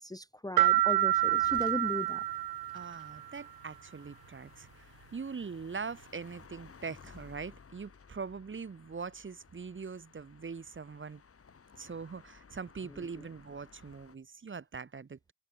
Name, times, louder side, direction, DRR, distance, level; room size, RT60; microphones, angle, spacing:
voice 1, 0.0-2.2, left 2 dB, 10° left, 1.0 m, -37 dB
sound 1, 0.6-3.2, right 15 dB, 55° right, 0.7 m, -28 dB
sound 2, 0.8-14.2, left 5 dB, 30° left, 2.7 m, -57 dB
voice 2, 2.7-11.2 11.7-15.3, right 5 dB, 25° right, 1.6 m, -42 dB
supercardioid pair, 80°, 45 cm